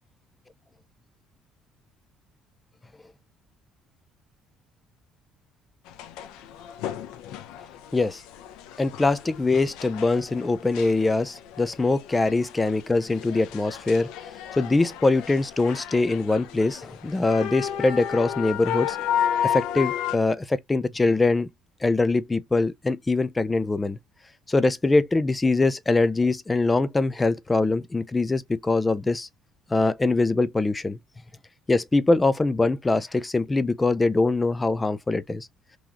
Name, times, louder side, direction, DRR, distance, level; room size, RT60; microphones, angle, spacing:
sound 1, 5.9-20.2, left 10 dB, 85° left, 0.7 m, -33 dB
voice 1, 8.8-14.1 14.5-19.0 19.4-21.5 21.8-24.0 24.5-29.3 29.7-31.0 31.7-35.5, left 3 dB, 15° left, 0.4 m, -23 dB
3.8 x 3.1 x 2.8 m
cardioid pair, 130°, 0 cm